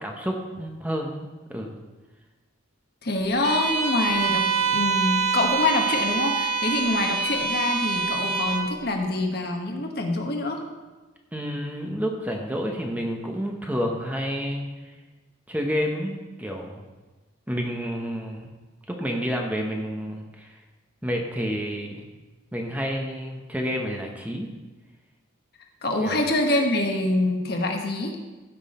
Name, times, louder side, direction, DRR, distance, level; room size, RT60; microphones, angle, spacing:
voice 1, 0.0-1.8 11.3-14.9 15.5-16.9 17.5-18.5 18.9-20.6 21.0-22.1 22.5-24.5 26.0-26.2, equal, 10° right, 1 dB, 0.9 m, -30 dB
voice 2, 3.0-10.6 25.8-28.1, left 2 dB, 50° left, 2 dB, 1.3 m, -25 dB
Bowed string instrument, 3.4-8.7, right 5 dB, 35° right, 1.9 m, -25 dB
15.5 x 6.2 x 4.2 m, 1.2 s
head